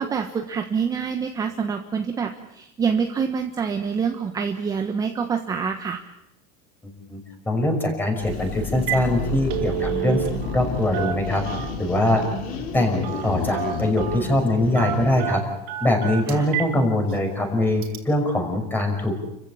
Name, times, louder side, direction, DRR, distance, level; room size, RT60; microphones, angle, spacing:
voice 1, 0.0-6.0 16.3-16.5, right 6 dB, 20° right, 5 dB, 1.3 m, -26 dB
voice 2, 6.8-7.2 7.5-10.2 10.5-12.2 12.7-15.4 15.8-19.2, left 1 dB, 10° left, 4 dB, 5.7 m, -22 dB
sound 1, 8.2-15.4, left 4 dB, 45° left, 3.7 m, -31 dB
Telephone, 8.3-8.4 8.7-9.1 9.3-10.6 10.9-11.9 13.0-13.3 13.5-14.2 14.7-16.7 17.1-17.2 17.8-18.0, right 13 dB, 55° right, 4.4 m, -29 dB
29.5 x 15.5 x 8.7 m, 0.88 s
supercardioid pair, 155°, 20 cm